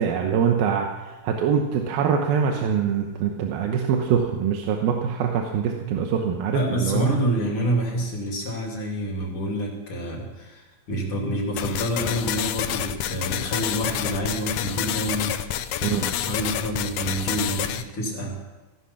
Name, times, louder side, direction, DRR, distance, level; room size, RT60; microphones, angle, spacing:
voice 1, 0.0-7.0 15.8-16.0, right 7 dB, 80° right, 3 dB, 2.9 m, -24 dB
voice 2, 6.5-15.3 15.8-18.4, right 1 dB, 40° left, 0 dB, 3.2 m, -27 dB
sound 1, 11.6-17.8, left 11 dB, 80° left, 2.0 m, -28 dB
16.0 x 11.5 x 5.8 m, 1.2 s
omnidirectional pair, 4.2 m